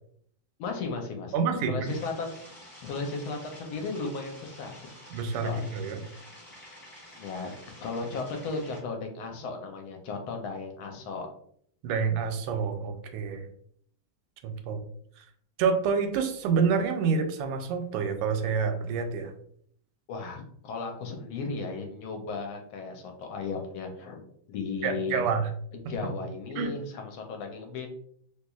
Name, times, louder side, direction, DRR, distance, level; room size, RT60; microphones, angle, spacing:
voice 1, 0.6-2.4 2.8-4.7 5.4-5.7 7.1-7.5 7.8-11.3 20.1-24.2 24.5-25.2 25.9-27.9, left 4 dB, 75° left, 3 dB, 1.4 m, -35 dB
voice 2, 1.3-1.8 5.1-6.0 11.8-13.4 14.4-14.8 15.6-19.3 24.8-25.5 26.6-26.7, right 5 dB, 85° right, 6 dB, 1.5 m, -27 dB
sound 1, 1.8-8.8, left 1 dB, 20° left, 1.1 m, -49 dB
3.2 x 3.0 x 2.3 m, 0.64 s
omnidirectional pair, 2.4 m